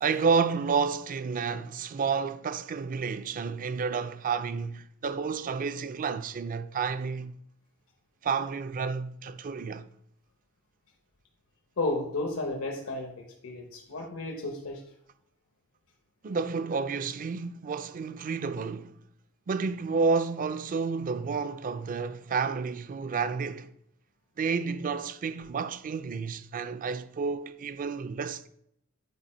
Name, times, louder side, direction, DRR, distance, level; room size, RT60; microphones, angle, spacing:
voice 1, 0.0-7.3 8.2-9.9 16.2-18.9 19.5-23.7 24.4-28.5, right 5 dB, 40° right, 0.4 m, -30 dB
voice 2, 11.8-14.8, left 2 dB, 85° left, 1.0 m, -33 dB
8.4 x 4.6 x 4.3 m
head